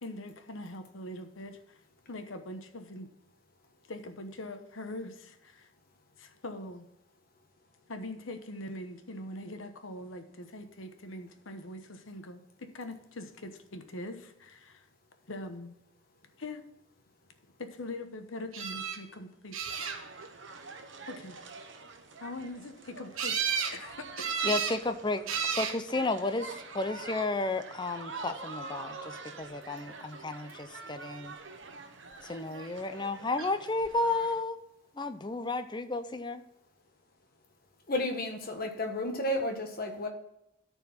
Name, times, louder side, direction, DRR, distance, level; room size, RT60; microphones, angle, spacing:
voice 1, 0.0-1.8 2.1-3.1 3.9-5.7 6.2-6.9 7.9-14.9 15.3-15.8 16.4-16.6 17.6-19.6 21.1-21.4 22.2-23.4 23.7-24.6, left 1 dB, 75° left, 7 dB, 1.1 m, -42 dB
sound 1, 18.5-19.0 19.5-20.3 23.2-23.8 24.2-24.8 25.3-25.8 26.7-27.2 33.4-33.5 33.8-33.9, right 7 dB, 90° right, 1.2 m, -32 dB
sound 2, 19.7-34.4, right 3 dB, 65° right, 1.0 m, -46 dB
voice 2, 24.4-31.3 32.2-34.6 34.9-36.4, left 2 dB, 20° left, 9 dB, 0.6 m, -33 dB
voice 3, 37.9-40.1, left 1 dB, 45° left, 3 dB, 1.4 m, -32 dB
13.0 x 4.6 x 5.8 m, 0.82 s
head